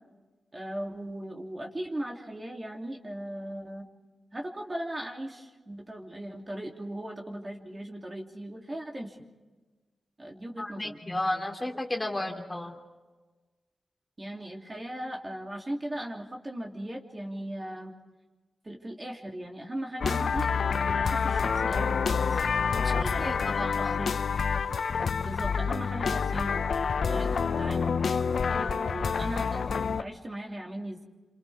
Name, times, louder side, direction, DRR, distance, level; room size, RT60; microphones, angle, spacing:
voice 1, 0.5-3.8 4.3-9.2 10.2-11.0 14.2-17.9 18.6-22.4 22.9-23.3 23.7-24.2 25.2-26.6 27.1-28.0 28.5-31.0, right 1 dB, 30° right, 0 dB, 3.0 m, -38 dB
voice 2, 10.6-12.8 22.7-24.0, left 1 dB, 20° left, 2 dB, 2.9 m, -33 dB
sound 1, 20.0-30.0, left 6 dB, 75° left, 0.7 m, -27 dB
28.5 x 27.0 x 3.6 m, 1.3 s
cardioid pair, 70°, 0 cm